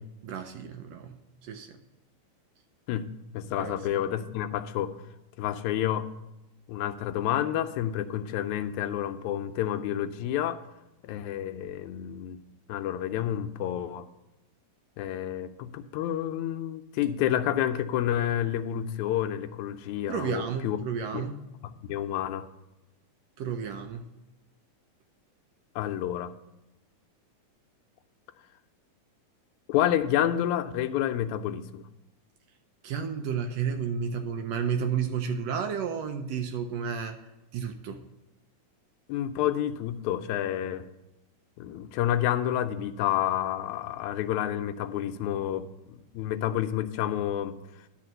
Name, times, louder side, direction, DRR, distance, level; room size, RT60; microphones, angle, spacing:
voice 1, 0.2-1.7 3.6-3.8 20.1-21.4 23.4-24.0 32.8-37.2 37.5-38.0, right 7 dB, 80° right, 6 dB, 1.5 m, -32 dB
voice 2, 3.3-4.9 5.4-6.1 6.7-10.6 11.0-12.4 12.7-14.1 15.0-20.8 21.1-21.3 21.6-22.5 25.8-26.3 29.7-31.8 39.1-40.9 41.6-47.6, left 11 dB, 80° left, 9 dB, 1.8 m, -29 dB
11.0 x 4.2 x 7.6 m, 0.97 s
omnidirectional pair, 3.6 m